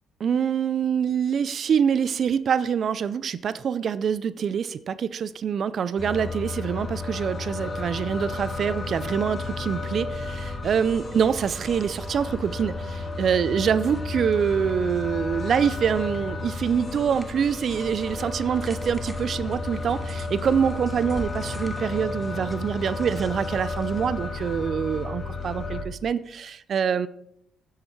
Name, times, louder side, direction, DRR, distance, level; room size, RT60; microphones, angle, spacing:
voice 1, 0.2-27.1, right 7 dB, 55° right, 17 dB, 0.5 m, -25 dB
sound 1, 6.0-25.8, left 3 dB, 40° left, 2.0 m, -33 dB
sound 2, 7.7-24.0, right 1 dB, 15° right, 1.4 m, -43 dB
9.7 x 8.2 x 4.5 m, 0.76 s
supercardioid pair, 70°, 0 cm